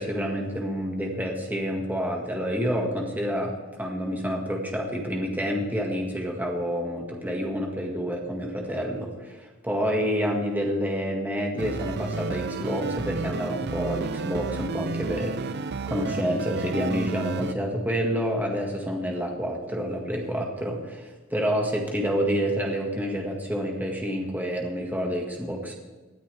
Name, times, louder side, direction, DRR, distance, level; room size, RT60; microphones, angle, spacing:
voice 1, 0.0-25.7, equal, 10° right, 0 dB, 1.9 m, -28 dB
sound 1, 11.6-17.5, right 4 dB, 50° right, 0.6 m, -31 dB
20.0 x 13.0 x 3.5 m, 1.2 s
head